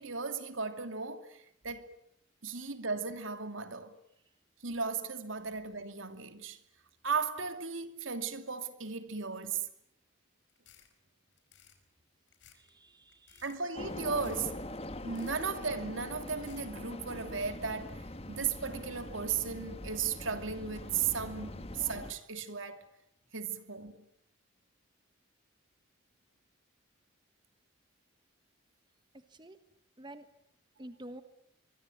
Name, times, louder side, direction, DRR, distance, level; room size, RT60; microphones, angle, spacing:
voice 1, 0.0-1.9 2.4-4.0 4.6-6.6 7.0-9.7 13.4-14.6 15.0-22.9 23.3-24.0, right 5 dB, 70° right, 2.8 m, -36 dB
sound 1, 10.5-10.9 11.3-11.8 12.3-12.7 13.1-13.6 14.1-14.5 15.0-15.6 16.3-16.7, left 9 dB, 60° left, 5.3 m, -60 dB
voice 2, 12.5-13.5 29.1-29.6 30.0-30.3 30.8-31.2, right 1 dB, 20° right, 1.4 m, -49 dB
sound 2, 13.8-22.1, left 1 dB, 30° left, 1.6 m, -43 dB
24.5 x 23.5 x 9.3 m
head